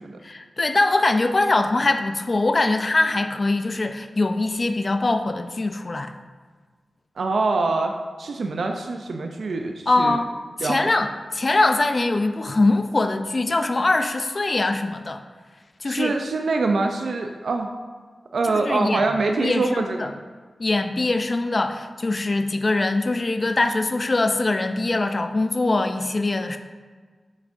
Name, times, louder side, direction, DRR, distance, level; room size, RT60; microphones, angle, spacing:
voice 1, 0.2-6.1 9.9-10.3 10.6-11.1 11.3-15.2 15.8-16.1 18.6-19.1 19.4-20.1 20.6-26.6, left 2 dB, 40° left, 7 dB, 0.4 m, -22 dB
voice 2, 7.2-10.2 10.6-10.9 15.8-17.7 18.3-20.1, right 3 dB, 80° right, 4 dB, 0.4 m, -24 dB
7.1 x 6.3 x 2.6 m, 1.5 s
wide cardioid pair, 90°, 0 cm